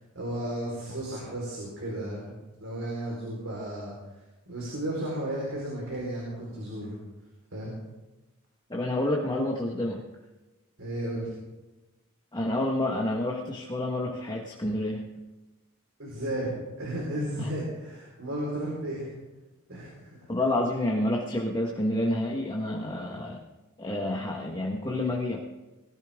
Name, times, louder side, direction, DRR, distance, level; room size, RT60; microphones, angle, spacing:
voice 1, 0.1-2.2 2.6-3.9 4.5-7.0 7.5-7.7 10.8-11.4 16.0-19.1 19.7-20.1, right 1 dB, 65° right, -4 dB, 4.7 m, -33 dB
voice 2, 8.7-10.0 12.3-15.0 17.4-17.5 20.3-23.4 23.8-25.4, left 1 dB, 20° left, -1 dB, 1.6 m, -29 dB
20.5 x 14.5 x 3.7 m, 1.1 s
head